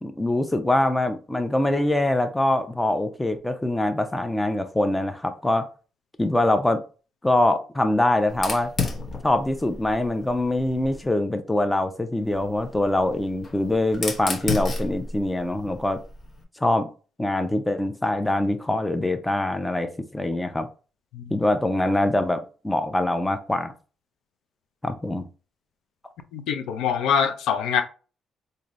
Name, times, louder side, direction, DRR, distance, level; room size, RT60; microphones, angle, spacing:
voice 1, 0.0-5.7 6.2-6.8 7.2-8.7 9.2-16.0 16.6-16.9 17.2-20.7 21.3-23.7 24.8-25.2, left 1 dB, 10° left, 0.5 m, -24 dB
Fire, 8.3-11.1 12.2-16.4, left 3 dB, 40° left, 1.0 m, -33 dB
voice 2, 26.3-27.8, left 7 dB, 85° left, 0.5 m, -24 dB
3.8 x 2.7 x 3.1 m
cardioid pair, 90°, 0 cm